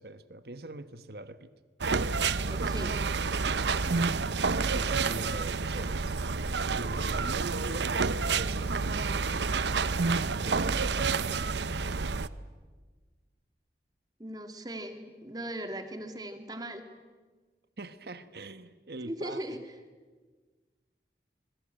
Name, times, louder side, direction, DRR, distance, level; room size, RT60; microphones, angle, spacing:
voice 1, 0.0-1.5 2.6-2.7 3.1-3.2 3.5-4.1 4.7-6.2 6.7-7.9 8.3-9.6 10.3-10.8 17.8-19.6, right 2 dB, 65° right, 12 dB, 1.2 m, -43 dB
sound 1, 1.8-12.3, right 4 dB, 85° right, 0.8 m, -29 dB
voice 2, 2.5-2.9 14.2-16.8 19.0-19.6, right 1 dB, 20° right, 7 dB, 2.3 m, -38 dB
27.0 x 22.0 x 8.9 m, 1.4 s
head